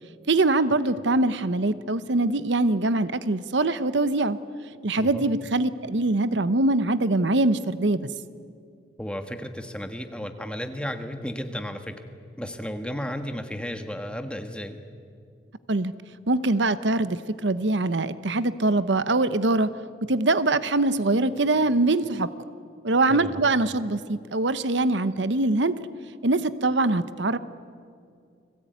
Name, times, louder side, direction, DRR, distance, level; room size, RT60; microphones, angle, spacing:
voice 1, 0.3-4.4 4.8-8.1 15.7-15.9 16.3-19.7 20.1-22.3 22.8-25.9 26.2-27.4, right 2 dB, 75° right, 14 dB, 0.9 m, -23 dB
voice 2, 5.0-5.3 9.0-12.0 12.4-14.8 23.1-23.4, equal, 5° left, 6 dB, 1.6 m, -33 dB
29.5 x 21.5 x 9.3 m, 2.3 s
head